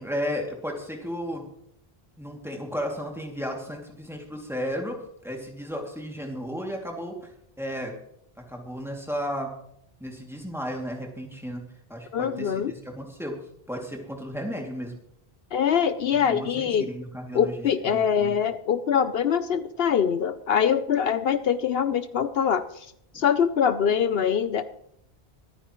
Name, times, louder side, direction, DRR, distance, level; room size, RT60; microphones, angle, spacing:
voice 1, 0.0-1.5 2.2-7.3 7.6-7.9 8.4-9.5 10.0-13.4 13.7-15.0 16.3-17.7 17.9-18.3 23.1-23.2, equal, ahead, 1 dB, 2.5 m, -34 dB
voice 2, 12.1-12.7 15.5-16.9 17.3-22.9 23.1-24.6, left 8 dB, 75° left, 12 dB, 0.9 m, -23 dB
24.0 x 9.4 x 3.1 m, 0.72 s
omnidirectional pair, 1.0 m